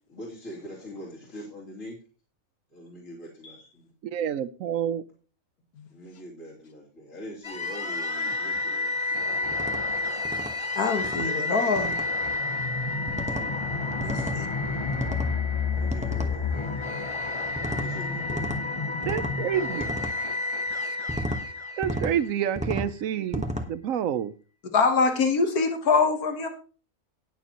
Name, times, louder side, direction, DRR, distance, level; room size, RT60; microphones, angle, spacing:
voice 1, 0.1-2.0 2.7-3.9 5.9-10.0 11.2-11.8 13.2-14.0 15.7-16.8 17.7-18.8, equal, 60° left, -5 dB, 3.3 m, -44 dB
voice 2, 4.0-5.0 13.6-14.2 19.1-20.0 21.8-24.3, right 9 dB, 70° right, 15 dB, 1.0 m, -29 dB
sound 1, 7.4-22.6, left 3 dB, 30° left, 0.5 m, -30 dB
sound 2, 9.5-9.8 10.2-10.5 11.0-11.3 11.8-12.1 13.1-13.5 14.0-14.4 14.9-15.3 15.9-16.3 17.6-17.9 18.3-18.6 19.0-19.4 19.8-20.1 21.1-21.4 21.8-22.1 22.6-22.9 23.3-23.7, equal, 5° right, 1.0 m, -32 dB
voice 3, 10.8-12.0 14.0-14.5 24.7-26.5, left 4 dB, 90° left, 5 dB, 1.9 m, -24 dB
19.0 x 6.8 x 3.0 m, 0.36 s
omnidirectional pair, 1.5 m